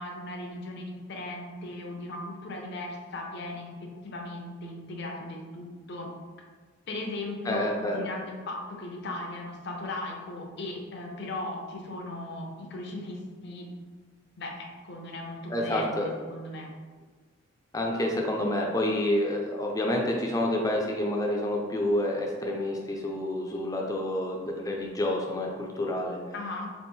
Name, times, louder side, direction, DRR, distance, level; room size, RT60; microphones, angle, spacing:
voice 1, 0.0-6.1 6.9-13.7 14.4-16.7 26.3-26.7, left 2 dB, 55° left, 0 dB, 0.7 m, -37 dB
voice 2, 7.4-8.1 15.5-16.1 17.7-26.2, left 1 dB, 15° left, 0 dB, 0.5 m, -28 dB
4.1 x 2.5 x 3.6 m, 1.4 s
head